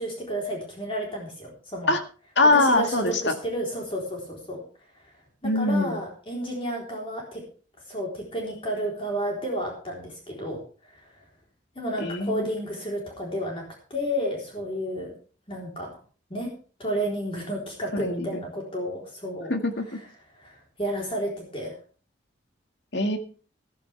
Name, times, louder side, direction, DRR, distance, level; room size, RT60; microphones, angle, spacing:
voice 1, 0.0-2.0 2.5-4.6 5.4-7.4 7.9-10.6 10.8-11.1 11.8-13.6 13.9-15.1 15.5-16.0 16.3-16.5 16.8-19.5 20.3-21.7, equal, 30° left, -1 dB, 4.0 m, -31 dB
voice 2, 2.4-3.3 5.4-6.0 12.0-12.5 17.9-18.4 19.5-19.9 22.9-23.2, left 2 dB, 70° left, 6 dB, 2.0 m, -23 dB
14.5 x 13.5 x 3.5 m, 0.39 s
head